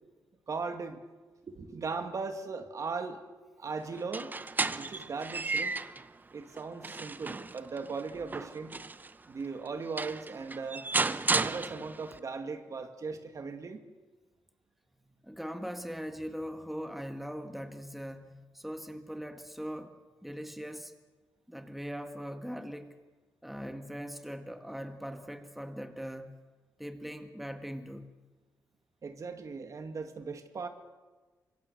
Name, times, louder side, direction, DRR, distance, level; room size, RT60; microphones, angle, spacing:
voice 1, 0.5-1.0 1.5-3.2 3.6-4.3 4.8-5.7 6.3-8.7 9.3-10.9 11.2-13.8 29.0-30.7, right 4 dB, 50° right, 7 dB, 2.3 m, -38 dB
sound 1, 4.0-6.1 6.6-9.1 9.7-9.8 10.0-12.2, right 3 dB, 25° right, 0.8 m, -33 dB
voice 2, 15.1-20.0 20.2-20.9 21.5-23.0 23.4-26.4 26.8-28.1, equal, ahead, 6 dB, 1.9 m, -40 dB
25.5 x 22.5 x 7.0 m, 1.3 s
cardioid pair, 85°, 7 cm